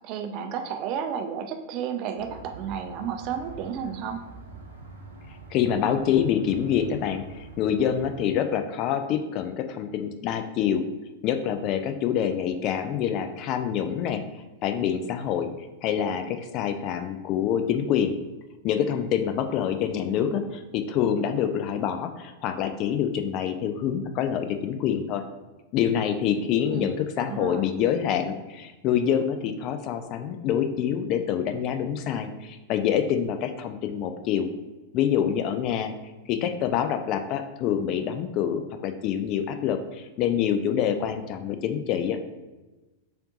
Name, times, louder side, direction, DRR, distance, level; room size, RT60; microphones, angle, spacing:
voice 1, 0.0-4.2 26.7-27.6, right 7 dB, 40° right, 6 dB, 0.5 m, -32 dB
sound 1, 2.2-8.3, right 4 dB, 80° right, 0.8 m, -45 dB
voice 2, 5.5-10.8 11.2-14.2 14.6-15.5 15.8-18.1 18.6-25.2 25.7-34.5 34.9-35.9 36.3-42.2, left 9 dB, 40° left, 8 dB, 0.3 m, -26 dB
6.5 x 2.5 x 2.6 m, 1.2 s
figure-of-eight pair, 90°, 0 cm